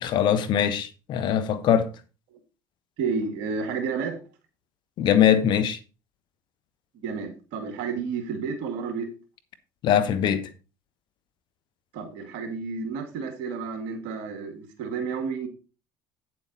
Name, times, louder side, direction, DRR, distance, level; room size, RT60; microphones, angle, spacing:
voice 1, 0.0-1.9 5.0-5.8 9.8-10.5, left 9 dB, 60° left, 1.2 m, -22 dB
voice 2, 3.0-4.2 6.9-9.1 11.9-15.5, right 5 dB, 75° right, 2.0 m, -31 dB
8.9 x 7.8 x 4.1 m
hypercardioid pair, 70°, 9 cm